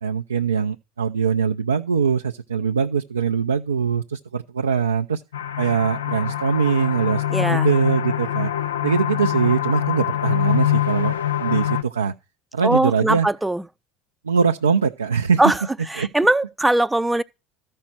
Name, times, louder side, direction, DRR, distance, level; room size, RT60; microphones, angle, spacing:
voice 1, 0.0-5.2 5.6-8.5 8.8-12.1 12.5-13.3 14.2-15.4 16.0-16.1, right 6 dB, 90° right, 0.5 m, -22 dB
sound 1, 5.3-11.8, left 12 dB, 85° left, 0.6 m, -24 dB
voice 2, 7.3-7.7 12.6-13.6 15.4-15.6 15.9-17.2, right 1 dB, 10° right, 0.6 m, -20 dB
13.5 x 5.4 x 6.0 m
hypercardioid pair, 75°, 0 cm